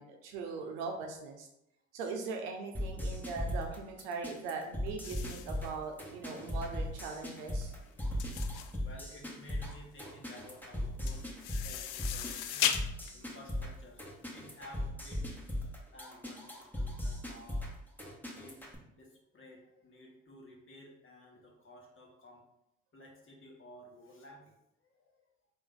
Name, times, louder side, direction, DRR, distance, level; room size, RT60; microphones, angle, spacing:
voice 1, 0.0-1.5 1.9-7.7, right 4 dB, 80° right, 3 dB, 0.8 m, -40 dB
sound 1, 2.7-18.7, left 1 dB, 5° left, 1.2 m, -38 dB
sound 2, 5.0-14.6, left 10 dB, 60° left, 0.5 m, -39 dB
voice 2, 8.8-11.3 11.6-12.7 13.1-14.0 14.3-15.3 15.9-17.7 18.3-22.4 22.9-24.5 24.8-25.2, left 1 dB, 35° left, -1 dB, 1.3 m, -54 dB
3.5 x 2.7 x 3.7 m, 0.84 s
hypercardioid pair, 60°, 35 cm